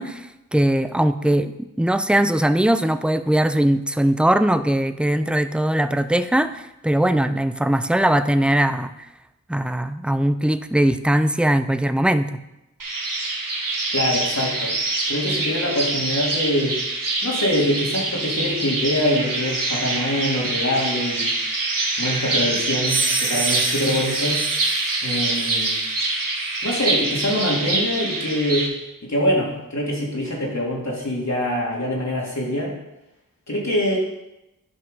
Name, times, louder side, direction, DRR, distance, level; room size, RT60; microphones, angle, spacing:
voice 1, 0.0-1.5 1.8-8.9 9.5-12.3, right 1 dB, 5° right, 11 dB, 0.6 m, -20 dB
sound 1, 12.8-28.7, right 2 dB, 65° right, 1.8 m, -25 dB
voice 2, 13.9-14.7 15.1-16.8 17.2-21.3 22.0-24.4 25.0-25.8 26.6-28.7 29.0-32.7 33.5-34.0, left 1 dB, 50° left, -4 dB, 3.4 m, -24 dB
sound 2, 22.8-25.8, right 3 dB, 45° right, 1.3 m, -28 dB
11.0 x 5.5 x 5.5 m, 0.91 s
cardioid pair, 45°, 35 cm